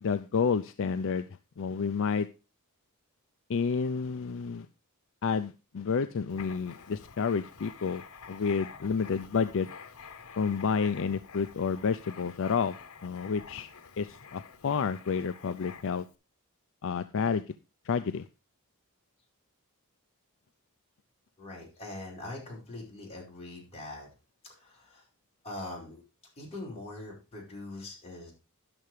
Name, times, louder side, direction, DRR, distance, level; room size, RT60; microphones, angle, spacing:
voice 1, 0.0-1.3 1.6-2.3 3.5-4.7 5.2-9.7 10.4-12.7 13.0-13.7 14.0-16.1 16.8-17.4 17.8-18.2, left 5 dB, 65° left, 11 dB, 0.5 m, -30 dB
Writing, 6.3-16.1, left 6 dB, 90° left, 1.0 m, -48 dB
voice 2, 21.4-24.1 24.4-25.1 25.4-26.0 26.4-28.3, left 2 dB, 30° left, -3 dB, 5.1 m, -42 dB
10.5 x 6.7 x 4.7 m, 0.29 s
head